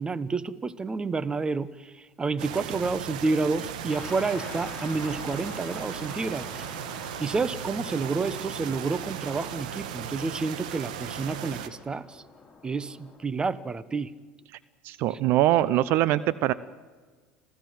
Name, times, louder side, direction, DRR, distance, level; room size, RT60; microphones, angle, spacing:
voice 1, 0.0-6.6 7.2-12.2 12.6-14.1 15.1-15.2, right 4 dB, 20° right, 16 dB, 1.1 m, -29 dB
sound 1, 2.4-11.7, right 9 dB, 80° right, 1.8 m, -37 dB
sound 2, 3.9-13.2, left 4 dB, 20° left, 4.6 m, -46 dB
voice 2, 14.8-16.5, right 14 dB, 60° right, 17 dB, 0.7 m, -23 dB
27.5 x 16.0 x 7.8 m, 1.4 s
hypercardioid pair, 80°, 4 cm